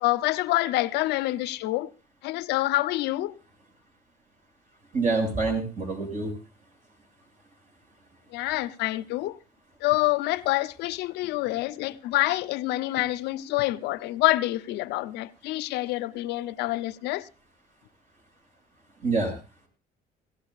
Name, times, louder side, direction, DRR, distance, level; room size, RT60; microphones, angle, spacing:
voice 1, 0.0-1.9 2.2-3.4 8.3-9.4 9.8-17.3, left 17 dB, 90° left, 0.6 m, -27 dB
voice 2, 4.9-6.3 19.0-19.4, right 3 dB, 45° right, 7.0 m, -26 dB
18.5 x 16.5 x 2.4 m
cardioid pair, 110°, 17 cm